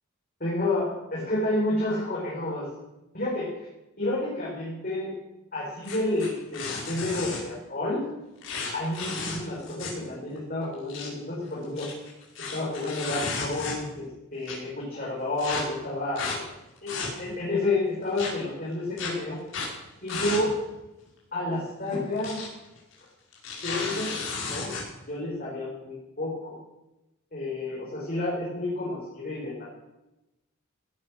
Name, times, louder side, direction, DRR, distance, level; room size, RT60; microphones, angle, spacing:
voice 1, 0.4-2.7 3.1-3.5 4.0-5.2 5.5-8.0 8.7-11.9 12.5-16.4 16.8-19.4 20.0-20.5 21.3-22.4 23.6-24.7 25.1-26.5 27.3-29.6, left 2 dB, 45° left, -6 dB, 5.3 m, -30 dB
sound 1, 5.8-7.4 8.4-10.1 10.4-10.5 10.7-11.1 11.6-14.0 14.4-14.5 15.4-15.6 16.2-16.4 16.8-17.4 18.2-18.3 19.0-19.1 19.5-19.7 20.1-20.4 20.7-20.8 21.9-22.5 22.8-22.9 23.3-24.8, left 4 dB, 70° left, 5.8 m, -33 dB
17.5 x 12.0 x 6.6 m, 0.97 s
head